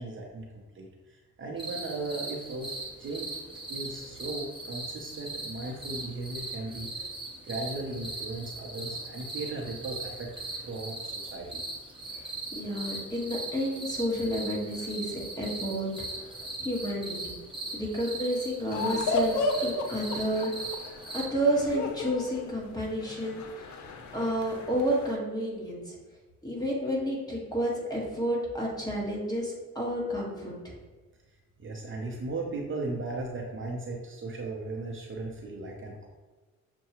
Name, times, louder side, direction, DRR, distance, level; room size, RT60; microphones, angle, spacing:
voice 1, 0.0-2.7 3.0-7.1 7.4-11.6 31.6-36.1, right 2 dB, 40° right, 0 dB, 0.7 m, -37 dB
sound 1, 1.6-21.3, right 2 dB, 15° right, 0.9 m, -39 dB
voice 2, 12.1-15.9 16.1-17.3 17.7-20.5 21.1-23.7 24.1-26.0 26.4-30.7, equal, 15° left, -4 dB, 1.4 m, -31 dB
sound 2, 18.7-25.2, left 2 dB, 70° left, 0.6 m, -34 dB
6.5 x 2.2 x 2.9 m, 1.3 s
cardioid pair, 90°, 30 cm